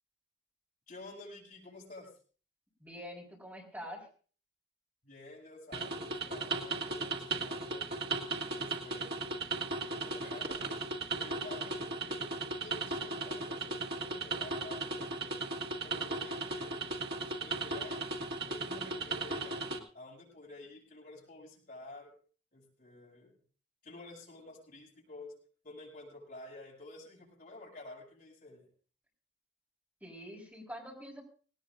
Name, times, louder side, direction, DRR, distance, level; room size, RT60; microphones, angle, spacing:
voice 1, 0.9-2.1 5.0-7.9 8.6-9.2 9.9-10.8 11.2-15.3 15.7-17.0 17.2-19.6 19.9-22.1 22.5-23.3 23.8-25.3 25.6-28.7, left 2 dB, 50° left, -4 dB, 7.4 m, -51 dB
voice 2, 2.8-4.1 30.0-31.2, equal, 10° right, -2 dB, 4.3 m, -45 dB
sound 1, 5.7-19.8, right 3 dB, 65° right, 1.9 m, -36 dB
19.0 x 18.5 x 2.6 m, 0.41 s
head